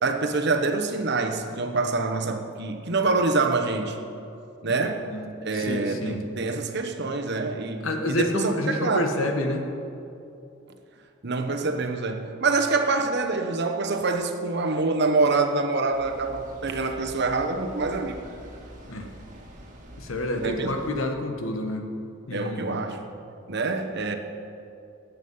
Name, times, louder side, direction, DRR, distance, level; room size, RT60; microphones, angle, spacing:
voice 1, 0.0-4.0 4.6-5.1 5.4-9.1 11.2-18.2 20.4-20.7 22.3-23.1 23.5-24.1, right 3 dB, 55° right, 5 dB, 1.1 m, -26 dB
voice 2, 4.7-5.2 5.5-6.2 7.8-9.7 18.9-19.1 20.0-21.9 22.3-22.9, left 1 dB, 80° left, 4 dB, 1.5 m, -29 dB
sound 1, 15.9-20.9, equal, 40° right, 1.8 m, -45 dB
19.0 x 8.4 x 5.6 m, 2.7 s
head